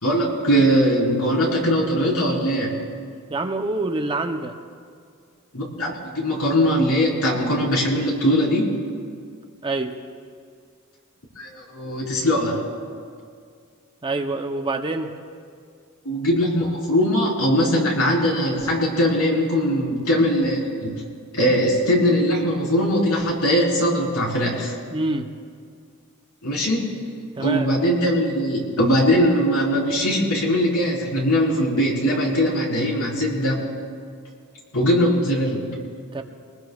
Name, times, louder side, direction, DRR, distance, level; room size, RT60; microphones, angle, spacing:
voice 1, 0.0-2.8 5.5-8.7 11.4-12.7 16.0-20.9 21.3-24.7 26.4-27.0 27.4-33.6 34.7-35.8, equal, 75° left, -3 dB, 4.1 m, -21 dB
voice 2, 3.3-4.6 9.6-10.0 14.0-15.1 24.9-25.3 27.3-27.7 36.1-36.2, right 2 dB, 20° right, 5 dB, 0.7 m, -26 dB
25.0 x 20.0 x 2.4 m, 2.2 s
head